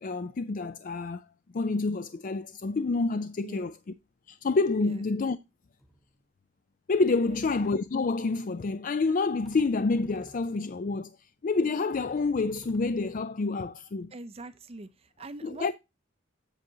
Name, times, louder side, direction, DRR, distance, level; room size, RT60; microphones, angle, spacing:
voice 1, 0.0-1.2 1.5-3.8 4.3-5.4 6.9-14.1 15.4-15.7, left 3 dB, 40° left, 0.4 m, -28 dB
sound 1, 5.8-6.2 6.9-7.0 7.3-8.1 9.4-10.9 11.5-11.6 11.9-13.8, equal, ahead, 1.0 m, -54 dB
voice 2, 14.1-15.7, right 2 dB, 30° right, 0.5 m, -43 dB
7.9 x 7.3 x 2.8 m
head